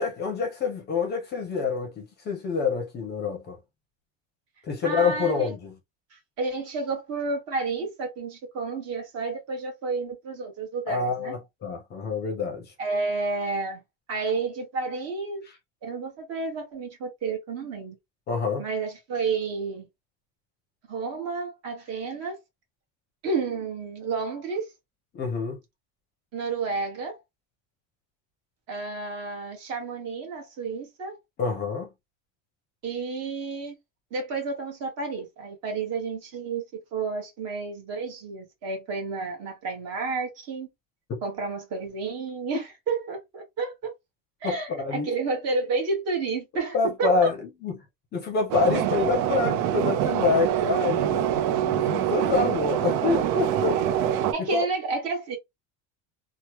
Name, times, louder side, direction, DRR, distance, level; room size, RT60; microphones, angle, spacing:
voice 1, 0.0-3.6 4.7-5.7 10.9-12.7 18.3-18.6 25.1-25.6 31.4-31.9 41.1-41.2 44.4-45.1 46.7-47.8 48.1-54.1 54.5-54.6, left 4 dB, 25° left, 0.6 m, -27 dB
voice 2, 4.8-5.5 6.1-11.3 12.8-13.8 14.1-15.4 15.8-18.0 18.6-19.9 20.9-22.4 23.2-24.7 26.3-27.2 28.7-31.2 32.8-33.7 34.1-36.6 36.9-40.7 41.2-43.9 44.4-47.3 54.3-55.4, right 4 dB, 40° right, 1.2 m, -31 dB
sound 1, 48.5-54.3, right 10 dB, 90° right, 0.6 m, -25 dB
3.1 x 2.1 x 2.9 m
cardioid pair, 180°, 37 cm